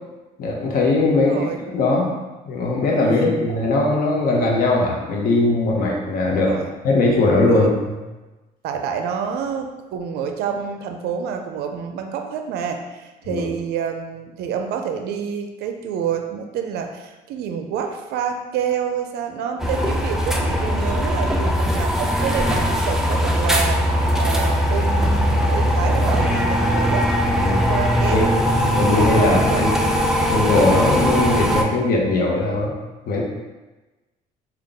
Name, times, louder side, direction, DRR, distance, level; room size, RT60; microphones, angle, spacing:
voice 1, 0.4-1.4 1.7-2.2 2.4-6.5 6.8-7.7 13.3-13.4 27.4-27.6 28.1-28.2 28.8-29.7 30.3-32.8 33.1-33.2, left 2 dB, 60° left, -1 dB, 0.8 m, -19 dB
voice 2, 1.2-1.7 3.1-3.3 6.3-6.7 7.4-7.7 8.6-23.9 24.2-27.1 27.7-28.3 29.2-30.0, right 7 dB, 75° right, 5 dB, 0.4 m, -28 dB
sound 1, 19.6-31.6, equal, ahead, 0.4 m, -20 dB
3.5 x 2.3 x 3.9 m, 1.1 s
cardioid pair, 110°, 17 cm